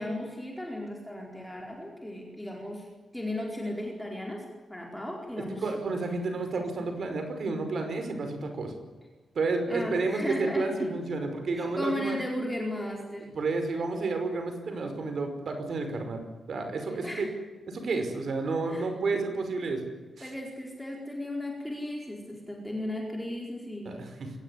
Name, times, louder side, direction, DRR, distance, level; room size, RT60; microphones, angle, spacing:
voice 1, 0.0-2.9 3.1-4.4 4.7-5.7 9.7-10.9 11.5-13.3 16.9-17.3 18.7-19.2 20.2-24.0, left 1 dB, 5° left, -1 dB, 4.5 m, -35 dB
voice 2, 5.6-8.7 9.4-12.2 13.3-17.3 17.7-19.8 20.2-20.3 23.9-24.3, right 3 dB, 50° right, 6 dB, 5.4 m, -31 dB
24.0 x 20.0 x 9.8 m, 1.2 s
wide cardioid pair, 180°, 0 cm